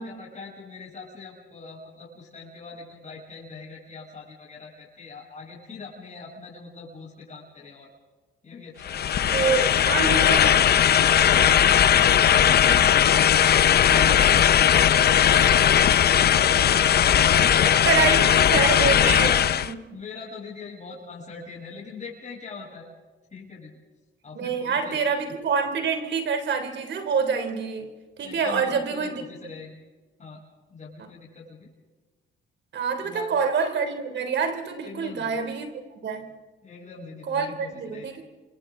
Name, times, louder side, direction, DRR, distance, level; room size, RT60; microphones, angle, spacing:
voice 1, 0.0-7.9 8.4-10.4 18.9-19.4 19.9-22.9 23.3-23.7 24.2-25.0 28.2-29.8 30.2-30.4 30.7-31.7 33.0-33.3 34.8-35.4 36.6-38.1, left 4 dB, 35° left, -4 dB, 7.7 m, -41 dB
sound 1, 8.8-19.7, left 9 dB, 55° left, 0.7 m, -18 dB
voice 2, 9.2-10.7 13.9-14.3 17.2-19.8 24.4-29.2 32.7-35.7 36.0-36.4 37.3-38.2, right 5 dB, 65° right, 7 dB, 3.3 m, -27 dB
29.5 x 25.0 x 3.9 m, 1.3 s
cardioid pair, 90°, 20 cm